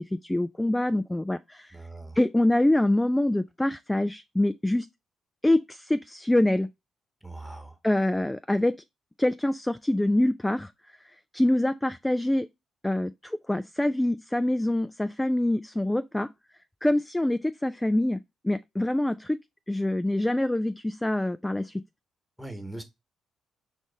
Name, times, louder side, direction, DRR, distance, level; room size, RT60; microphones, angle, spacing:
voice 1, 0.0-1.8 2.2-4.9 5.4-6.7 7.8-8.8 9.2-10.7 11.0-12.5 12.8-16.3 16.8-18.2 18.4-19.4 19.7-21.8, left 1 dB, 10° left, 0.3 m, -25 dB
voice 2, 1.7-2.2 7.2-7.8 22.4-22.8, right 2 dB, 5° right, 1.3 m, -40 dB
5.2 x 2.5 x 4.0 m
hypercardioid pair, 45°, 0 cm